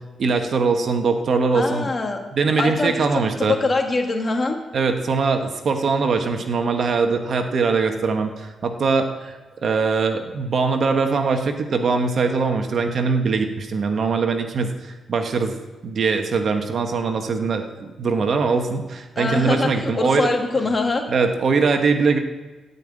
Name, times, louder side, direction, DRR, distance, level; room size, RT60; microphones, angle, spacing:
voice 1, 0.2-1.9 2.3-3.6 4.7-9.4 9.6-15.6 15.8-20.3 21.1-22.2, right 4 dB, 60° right, 6 dB, 1.3 m, -22 dB
voice 2, 1.5-2.2 2.6-4.6 19.2-21.0, left 3 dB, 30° left, 3 dB, 2.2 m, -23 dB
15.0 x 5.5 x 8.7 m, 1.3 s
cardioid pair, 70°, 0 cm